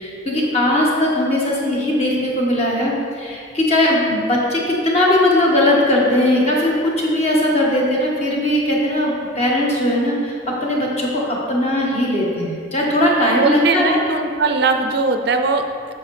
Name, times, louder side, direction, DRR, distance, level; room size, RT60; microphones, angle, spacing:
voice 1, 0.0-14.0, left 1 dB, 35° left, -3 dB, 1.3 m, -19 dB
voice 2, 13.3-15.9, right 4 dB, 55° right, 6 dB, 0.5 m, -20 dB
8.9 x 6.8 x 3.2 m, 2.3 s
head